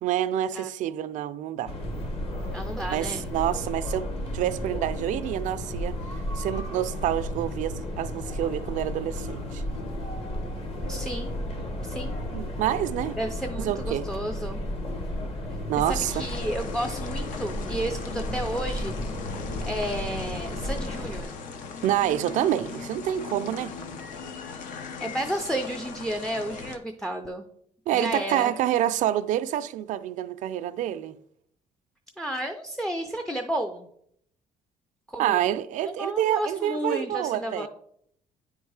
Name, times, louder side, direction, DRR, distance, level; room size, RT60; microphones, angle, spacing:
voice 1, 0.0-1.7 2.9-4.1 4.3-6.0 6.4-9.6 12.3-13.2 13.6-14.1 15.7-16.3 21.8-23.7 27.9-31.2 35.2-37.7, right 12 dB, 70° right, 0.4 m, -27 dB
sound 1, 1.7-21.2, left 1 dB, 45° left, 1.2 m, -33 dB
voice 2, 2.5-3.3 10.9-11.3 11.8-12.2 13.2-14.7 15.9-19.0 19.7-21.4 25.0-27.4 27.9-28.5 32.2-33.9 35.1-35.4 36.0-37.7, right 1 dB, 5° left, 0.4 m, -32 dB
sound 2, 15.8-26.8, left 5 dB, 80° left, 0.8 m, -39 dB
9.3 x 3.6 x 4.7 m
cardioid pair, 155°, 13 cm